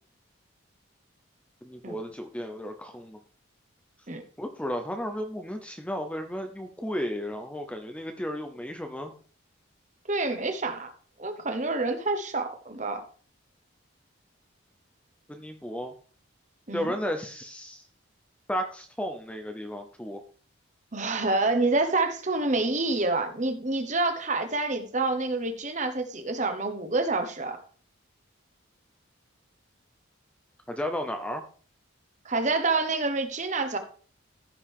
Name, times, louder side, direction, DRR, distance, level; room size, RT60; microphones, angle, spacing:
voice 1, 1.6-3.2 4.4-9.1 15.3-15.9 16.7-17.8 18.5-20.2 30.7-31.4, equal, 5° left, 5 dB, 0.7 m, -33 dB
voice 2, 10.1-10.9 11.2-13.0 16.7-16.9 20.9-27.6 32.2-33.8, right 3 dB, 35° right, 6 dB, 1.2 m, -27 dB
15.0 x 5.3 x 3.6 m, 0.42 s
head